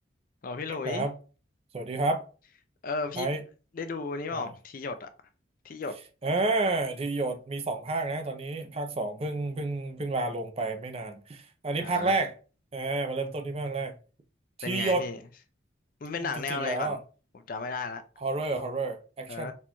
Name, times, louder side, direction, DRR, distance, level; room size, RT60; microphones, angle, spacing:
voice 1, 0.4-1.1 2.8-3.3 3.7-5.1 5.6-6.0 11.8-12.1 14.6-15.2 16.0-17.0 17.5-18.0 19.3-19.5, left 4 dB, 45° left, 0.4 m, -34 dB
voice 2, 1.7-2.2 3.2-3.4 4.3-4.5 6.2-12.3 12.7-13.9 14.6-15.1 16.2-17.0 18.2-19.5, right 2 dB, 30° right, 0.4 m, -30 dB
4.2 x 2.9 x 2.2 m
head